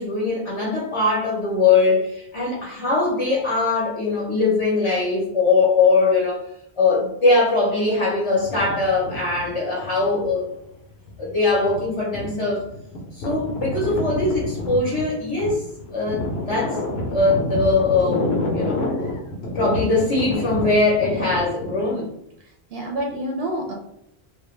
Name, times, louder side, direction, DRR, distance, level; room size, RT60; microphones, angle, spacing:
voice 1, 0.0-6.4 6.8-10.5 11.2-12.6 13.1-15.6 15.9-16.8 17.0-18.3 18.5-18.8 19.5-22.1, left 3 dB, 35° left, -5 dB, 0.6 m, -21 dB
sound 1, 8.3-10.5 11.1-21.9, left 2 dB, 75° left, 0.8 m, -29 dB
voice 2, 22.4-23.7, right 1 dB, 75° right, 0 dB, 0.8 m, -28 dB
2.2 x 2.2 x 3.1 m, 0.77 s
omnidirectional pair, 1.1 m